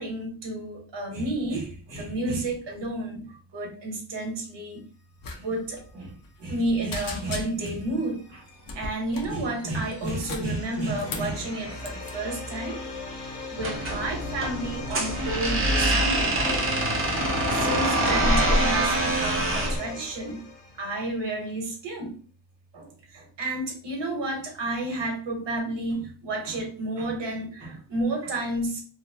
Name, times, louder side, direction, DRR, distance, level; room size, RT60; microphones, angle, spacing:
voice 1, 0.0-4.8 5.3-6.1 6.4-8.4 8.7-12.8 13.5-16.6 17.0-20.4 20.8-22.1 22.7-28.8, right 2 dB, 80° right, 0 dB, 1.1 m, -31 dB
sound 1, 5.2-5.4 5.6-5.8 6.2-6.6 6.9-7.8 8.6-9.4 9.9-11.4 11.8-12.1, left 3 dB, 55° left, 0.6 m, -37 dB
sound 2, 7.5-21.2, left 3 dB, 75° left, 0.9 m, -39 dB
sound 3, 13.6-19.8, right 1 dB, 30° right, 0.6 m, -25 dB
2.8 x 2.2 x 2.2 m, 0.41 s
wide cardioid pair, 145°, 42 cm